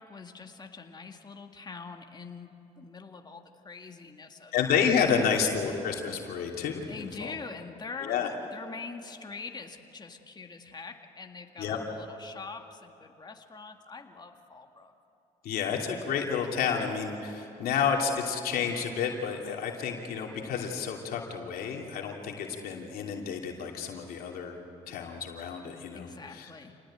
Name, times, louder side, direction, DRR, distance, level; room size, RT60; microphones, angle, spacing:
voice 1, 0.0-4.5 5.2-5.3 6.9-8.1 8.5-14.9 25.9-26.8, left 4 dB, 25° left, 4 dB, 1.9 m, -44 dB
voice 2, 4.5-7.3 8.0-8.3 11.6-11.8 15.4-24.6 24.9-26.5, left 6 dB, 70° left, 1 dB, 2.9 m, -30 dB
27.5 x 19.0 x 8.8 m, 2.9 s
cardioid pair, 85°, 16 cm